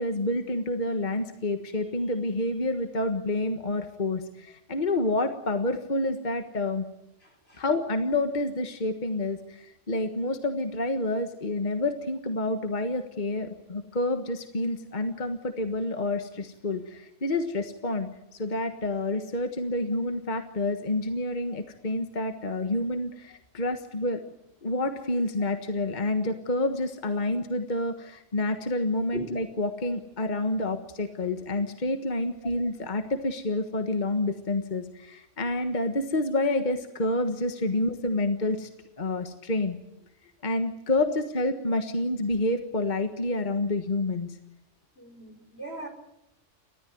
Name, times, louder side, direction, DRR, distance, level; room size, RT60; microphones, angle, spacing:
voice 1, 0.0-6.8 7.6-24.2 24.6-38.7 39.0-39.8 40.4-44.4, left 2 dB, 40° left, 7 dB, 1.6 m, -28 dB
voice 2, 7.2-7.6 29.1-29.2 45.0-45.9, left 1 dB, 55° left, 3 dB, 5.1 m, -40 dB
29.5 x 14.0 x 9.3 m, 0.85 s
omnidirectional pair, 1.3 m